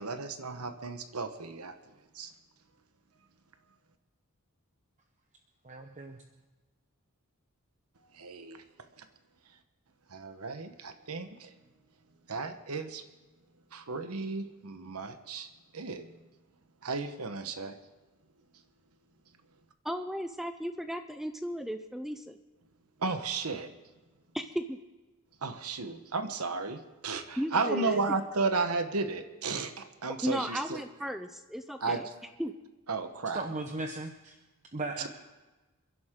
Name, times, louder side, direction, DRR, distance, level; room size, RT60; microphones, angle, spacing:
voice 1, 0.0-2.3 8.0-9.1 9.4-9.6 10.1-11.7 12.3-13.0 13.7-16.3 16.8-17.8 23.0-23.7 25.4-30.8 31.8-32.2 32.9-33.4 35.0-35.1, right 4 dB, 80° right, 8 dB, 1.2 m, -34 dB
voice 2, 5.6-6.2 33.3-34.4 34.6-35.1, right 2 dB, 35° right, 4 dB, 0.9 m, -37 dB
voice 3, 19.8-22.4 24.3-24.8 27.4-28.0 30.2-32.0 32.4-32.5, equal, ahead, 8 dB, 0.5 m, -35 dB
28.0 x 11.5 x 3.8 m, 1.2 s
head